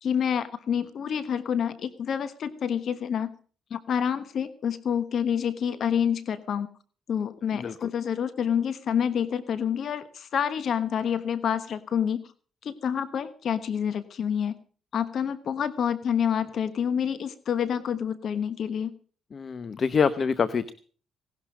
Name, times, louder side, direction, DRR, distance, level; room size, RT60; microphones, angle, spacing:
voice 1, 0.0-3.3 3.7-6.7 7.1-12.2 12.6-14.6 14.9-19.0, left 8 dB, 60° left, 13 dB, 1.2 m, -28 dB
voice 2, 19.3-20.7, left 6 dB, 45° left, 15 dB, 0.9 m, -25 dB
18.0 x 12.0 x 5.1 m, 0.42 s
cardioid pair, 90°, 0 cm